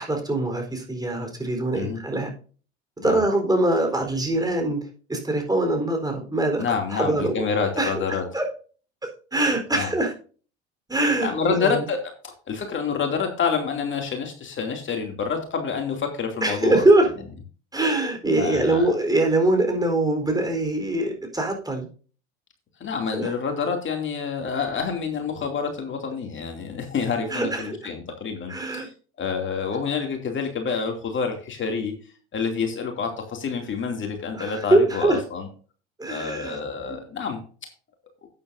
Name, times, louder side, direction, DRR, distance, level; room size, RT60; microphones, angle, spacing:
voice 1, 0.0-2.3 3.0-6.6 6.9-7.4 7.8-8.5 9.3-10.1 10.9-11.8 16.4-17.1 17.7-21.9 23.1-23.3 27.3-27.8 28.5-28.9 34.3-35.2 36.0-36.6 36.9-37.0, right 2 dB, 10° right, 3 dB, 4.2 m, -23 dB
voice 2, 6.6-8.2 9.7-9.9 11.2-16.8 18.4-18.9 22.8-28.9 29.2-32.0 32.3-35.5 36.0-37.4, left 6 dB, 35° left, 3 dB, 2.7 m, -28 dB
12.0 x 9.7 x 2.7 m, 0.39 s
hypercardioid pair, 70°, 33 cm